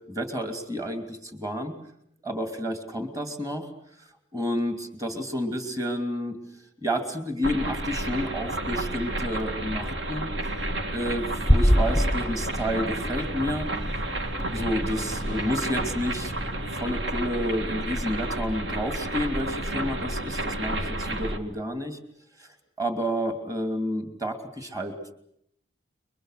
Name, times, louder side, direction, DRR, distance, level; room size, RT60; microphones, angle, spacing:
voice 1, 0.1-1.8 2.2-3.7 4.3-6.4 6.8-10.3 10.9-13.7 14.5-16.3 16.7-22.0 22.4-24.9, equal, 20° right, 7 dB, 2.8 m, -30 dB
sound 1, 7.4-21.4, right 1 dB, 70° right, 2.2 m, -31 dB
sound 2, 11.4-17.6, equal, ahead, 1.6 m, -28 dB
29.5 x 23.5 x 6.6 m, 0.72 s
head